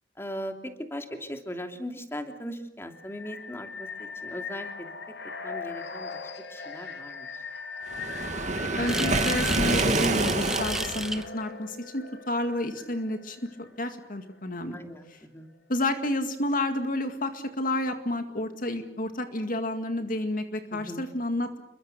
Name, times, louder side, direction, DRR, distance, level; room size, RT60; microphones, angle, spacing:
voice 1, 0.2-4.9 5.4-6.2 6.5-7.3 14.7-15.5 20.7-21.0, equal, 15° left, 5 dB, 2.9 m, -39 dB
sound 1, 2.9-13.7, left 3 dB, 80° left, 3.2 m, -38 dB
Waves surf, 7.9-11.2, right 3 dB, 45° right, 1.9 m, -27 dB
voice 2, 8.8-14.8 15.7-21.6, left 1 dB, 50° left, 7 dB, 2.0 m, -30 dB
sound 2, 8.9-11.2, right 1 dB, 5° right, 1.2 m, -33 dB
29.5 x 23.0 x 6.7 m, 0.77 s
head